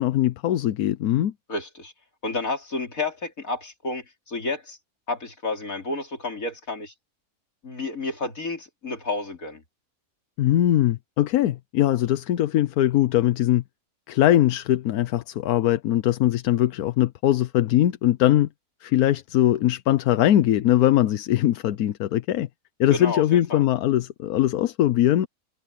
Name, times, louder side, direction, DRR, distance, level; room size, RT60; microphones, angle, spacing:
voice 1, 0.0-1.3 10.4-13.6 14.1-18.5 18.8-22.5 22.8-25.3, left 13 dB, 80° left, 1.2 m, -21 dB
voice 2, 1.5-1.9 2.2-4.8 5.1-6.9 7.6-9.6 22.9-23.6, left 3 dB, 65° left, 3.9 m, -31 dB
omnidirectional pair, 1.6 m